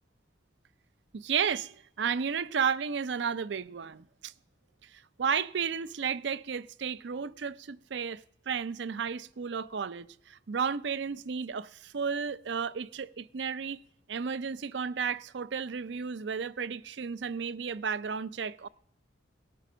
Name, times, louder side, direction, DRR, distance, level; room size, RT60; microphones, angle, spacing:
voice 1, 1.1-4.3 4.9-13.8 14.1-18.7, right 6 dB, 70° right, 0.5 m, -33 dB
18.0 x 11.0 x 6.2 m
head